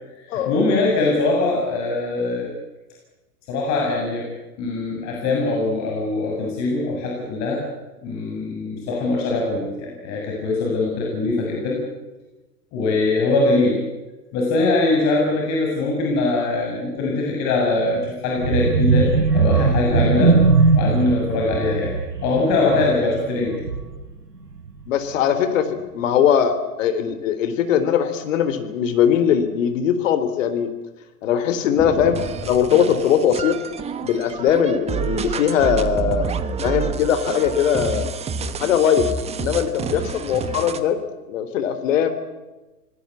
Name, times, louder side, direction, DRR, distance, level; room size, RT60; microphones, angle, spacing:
voice 1, 0.3-2.5 3.5-4.3 4.6-7.6 8.0-11.8 12.7-13.8 14.3-20.4 20.7-21.9 22.2-23.6, left 3 dB, 35° left, -1 dB, 7.5 m, -22 dB
sound 1, 18.4-24.1 24.5-24.8 25.1-25.2, right 4 dB, 90° right, 3.8 m, -20 dB
voice 2, 24.9-30.7 31.2-33.6 34.0-36.3 36.6-38.1 38.6-39.1 39.3-41.0 41.3-42.1, left 8 dB, 50° left, 10 dB, 3.7 m, -20 dB
sound 2, 31.8-40.8, right 6 dB, 15° right, 1.3 m, -28 dB
27.0 x 20.0 x 8.5 m, 1.1 s
hypercardioid pair, 120°, 48 cm